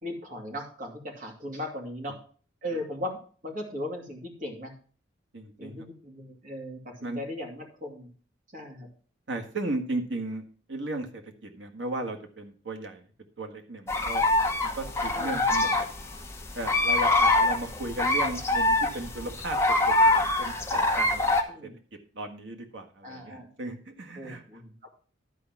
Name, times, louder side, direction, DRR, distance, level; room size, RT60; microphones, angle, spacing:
voice 1, 0.0-2.2 2.6-4.7 5.6-8.1 8.5-8.9 15.1-15.5 21.5-21.8 23.0-23.5 24.2-24.9, left 1 dB, 45° right, 1 dB, 2.6 m, -38 dB
voice 2, 5.3-5.8 7.0-7.2 9.3-10.4 10.7-13.0 13.4-14.2 14.7-15.9 16.5-19.6 19.9-21.7 22.1-24.4, right 2 dB, 70° right, 4 dB, 1.5 m, -35 dB
sound 1, 13.9-21.4, left 2 dB, 15° left, 1.0 m, -24 dB
11.5 x 4.9 x 5.9 m, 0.42 s
head